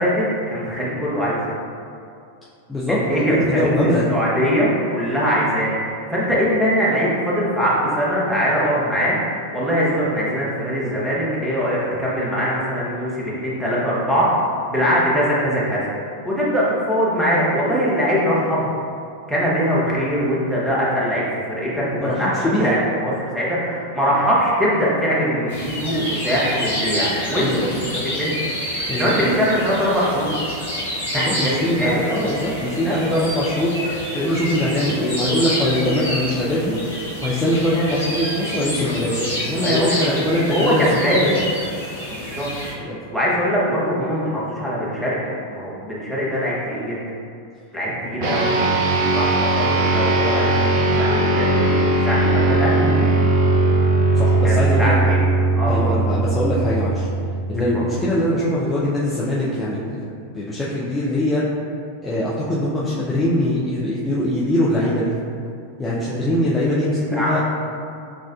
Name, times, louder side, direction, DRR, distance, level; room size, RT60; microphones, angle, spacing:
voice 1, 0.0-1.4 2.9-3.7 4.1-9.2 9.5-14.3 14.6-15.8 16.2-18.7 19.3-27.5 28.0-28.4 28.8-30.3 31.1-32.0 32.8-33.0 38.8-39.3 39.5-41.3 42.1-42.5 43.1-45.2 45.5-47.0 47.7-48.4 49.1-53.1 54.4-55.2 55.6-56.0 67.1-67.4, equal, 5° right, -7 dB, 1.0 m, -22 dB
voice 2, 2.7-4.0 22.0-22.2 22.4-22.8 27.4-27.7 28.9-29.3 31.1-33.8 34.1-36.8 37.2-40.8 41.2-41.4 42.8-43.0 54.2-54.9 55.7-57.1 57.5-60.0 60.3-61.4 62.0-65.1 65.8-67.4, left 1 dB, 10° left, -8 dB, 0.5 m, -22 dB
sound 1, 25.5-42.7, left 1 dB, 85° left, 1.2 m, -28 dB
sound 2, 48.2-57.9, right 2 dB, 45° right, 0.5 m, -19 dB
6.2 x 2.4 x 2.3 m, 2.4 s
figure-of-eight pair, 90°, 0 cm